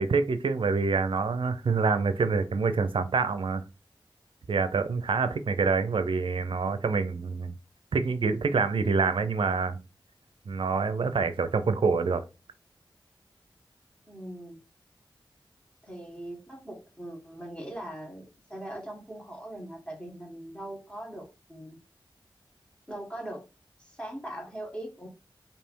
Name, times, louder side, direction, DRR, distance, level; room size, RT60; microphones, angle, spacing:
voice 1, 0.0-3.6 4.5-7.5 7.9-9.8 10.5-12.2, right 4 dB, 80° right, 0.6 m, -26 dB
voice 2, 14.1-14.6 15.8-21.8 22.9-23.5 23.8-25.1, right 1 dB, 10° left, 1.7 m, -41 dB
3.4 x 2.8 x 4.5 m
cardioid pair, 45°, 9 cm